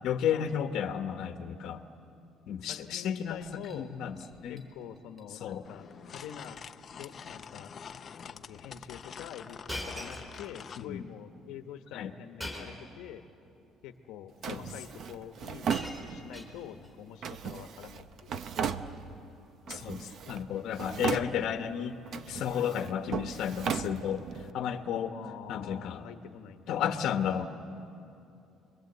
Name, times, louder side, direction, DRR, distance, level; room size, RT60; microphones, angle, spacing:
voice 1, 0.0-1.8 2.5-3.4 3.7-4.2 4.4-4.6 5.4-5.7 10.8-11.0 11.9-12.1 14.5-14.7 19.7-22.0 22.3-25.2 25.5-26.0 26.7-27.5, left 9 dB, 60° left, 6 dB, 1.2 m, -32 dB
voice 2, 2.7-3.9 4.5-6.6 7.0-7.7 8.3-13.2 13.8-18.4 19.1-19.6 19.9-20.3 20.7-21.3 22.5-22.7 25.1-27.1, left 9 dB, 85° left, 7 dB, 1.2 m, -46 dB
Shatter, 3.4-3.8 4.2-4.6 5.0-5.2 5.5-5.6 6.5-6.7 7.0-7.3 8.0-8.1 9.7-10.8 12.4-12.9 13.9-14.0 15.0-15.1 15.4-16.9 17.9-18.1, left 1 dB, 10° right, 3.9 m, -43 dB
sound 1, 5.6-10.9, left 7 dB, 35° left, 0.6 m, -46 dB
Drawer open or close, 14.4-16.5 17.2-19.3 19.7-20.5 20.7-21.7 22.1-24.5, right 7 dB, 50° right, 0.8 m, -36 dB
29.0 x 22.5 x 8.1 m, 2.7 s
cardioid pair, 150°, 0 cm